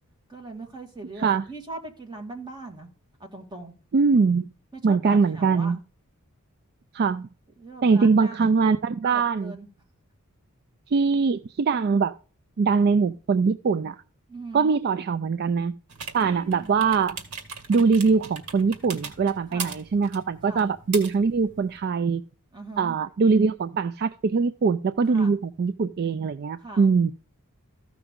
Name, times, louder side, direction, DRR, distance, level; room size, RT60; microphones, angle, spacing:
voice 1, 0.3-2.9 3.2-3.7 4.7-5.7 7.6-8.4 9.1-9.7 14.3-14.7 16.2-16.7 19.5-19.8 20.5-20.7 22.5-23.0 25.1-25.3 26.6-26.9, right 2 dB, 20° right, 1.9 m, -40 dB
voice 2, 3.9-4.5 4.8-5.8 6.9-7.3 7.8-9.6 10.9-12.1 12.6-14.0 14.5-15.7 16.1-17.2 17.7-22.2 22.8-27.1, right 5 dB, 45° right, 0.3 m, -22 dB
sound 1, 15.9-21.8, right 5 dB, 85° right, 2.0 m, -40 dB
14.0 x 6.0 x 3.6 m
head